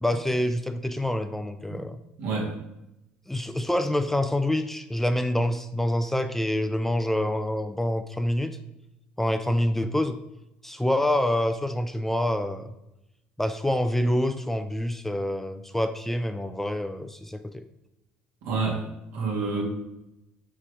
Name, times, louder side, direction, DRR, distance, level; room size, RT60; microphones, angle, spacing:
voice 1, 0.0-2.0 3.3-8.6 9.2-10.2 10.6-12.7 13.4-17.6, left 1 dB, 5° left, 9 dB, 0.4 m, -26 dB
voice 2, 2.2-2.5 18.4-18.8 19.1-19.6, right 4 dB, 70° right, -1 dB, 1.9 m, -28 dB
4.7 x 4.4 x 5.0 m, 0.90 s
hypercardioid pair, 65°, 4 cm